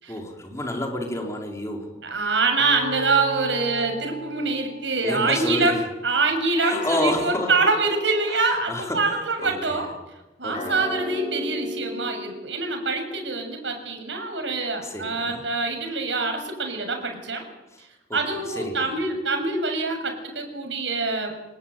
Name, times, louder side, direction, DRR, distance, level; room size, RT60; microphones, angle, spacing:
voice 1, 0.1-2.0 5.0-5.8 6.7-7.5 8.3-9.9 10.4-10.8 14.8-15.4 17.7-17.8 18.1-18.9, left 1 dB, 15° left, 2 dB, 4.5 m, -30 dB
voice 2, 2.0-9.9 10.4-17.4 18.1-21.4, right 3 dB, 85° right, 5 dB, 6.9 m, -25 dB
sound 1, 2.6-5.2 6.6-9.1 10.5-13.1, left 1 dB, 35° left, 5.2 m, -35 dB
27.0 x 19.5 x 9.2 m, 1.0 s
head